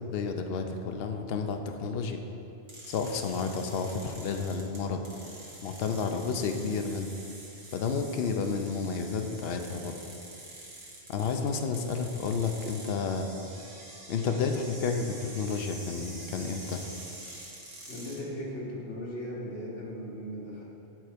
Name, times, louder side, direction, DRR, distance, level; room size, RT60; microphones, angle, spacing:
voice 1, 0.1-2.2 2.9-5.0 5.6-7.1 7.7-9.9 11.1-13.3 14.1-16.8, left 5 dB, 65° left, 5 dB, 0.8 m, -31 dB
sound 1, 2.7-18.2, right 2 dB, 60° right, 1.6 m, -46 dB
voice 2, 17.9-20.6, equal, 85° left, -4 dB, 1.8 m, -37 dB
9.1 x 4.5 x 5.1 m, 2.8 s
omnidirectional pair, 1.2 m